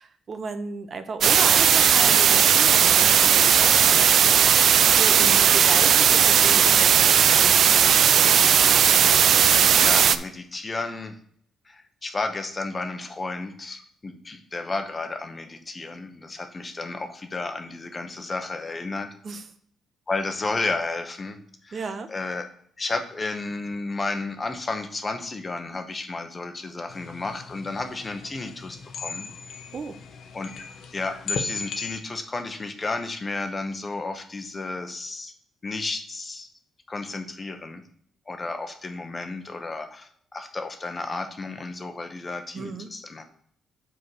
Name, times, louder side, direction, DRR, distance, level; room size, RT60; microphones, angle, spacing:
voice 1, 0.0-7.8 19.2-19.5 21.7-22.1 29.7-30.0 42.5-42.9, right 4 dB, 45° right, 9 dB, 0.8 m, -35 dB
sound 1, 1.2-10.2, right 8 dB, 65° right, 0.3 m, -17 dB
voice 2, 9.8-11.1 11.7-19.1 20.1-21.8 22.1-22.4 22.8-29.3 30.3-30.6 30.9-35.3 35.6-36.5 36.9-37.8 38.3-43.2, left 3 dB, 30° left, 6 dB, 1.0 m, -32 dB
sound 2, 26.9-32.0, left 4 dB, 65° left, 0.8 m, -36 dB
5.3 x 4.6 x 6.3 m, 0.62 s
cardioid pair, 90°, 0 cm